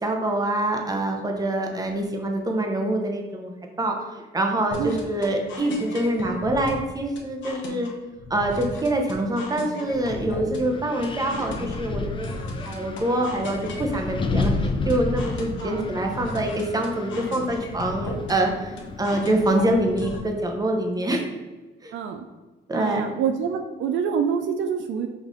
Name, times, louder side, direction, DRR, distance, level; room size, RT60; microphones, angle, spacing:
voice 1, 0.0-3.5 3.8-7.9 8.3-12.3 12.6-21.2 21.8-21.9 22.7-23.0, right 1 dB, 20° right, 2 dB, 0.8 m, -25 dB
sound 1, 4.7-20.2, left 2 dB, 75° left, 0.8 m, -37 dB
Wind, 10.1-20.1, left 3 dB, 25° left, 0.5 m, -32 dB
voice 2, 21.9-22.3 22.7-25.1, right 7 dB, 70° right, 5 dB, 0.4 m, -26 dB
5.1 x 2.6 x 3.7 m, 1.2 s
cardioid pair, 90°, 20 cm